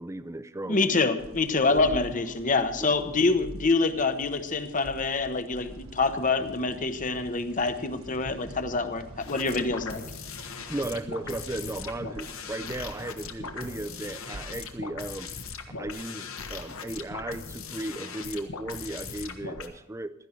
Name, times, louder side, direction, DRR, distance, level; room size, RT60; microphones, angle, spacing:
voice 1, 0.0-1.0 1.5-2.0 2.3-2.4 2.8-2.9 10.7-15.3 15.8-20.1, right 1 dB, 15° right, 12 dB, 0.5 m, -36 dB
voice 2, 0.7-10.0, left 3 dB, 40° left, 9 dB, 1.0 m, -26 dB
sound 1, 1.2-14.5, right 1 dB, 80° right, 1.2 m, -46 dB
sound 2, 9.2-19.7, left 5 dB, 75° left, 1.4 m, -39 dB
16.0 x 12.5 x 4.5 m, 0.84 s
head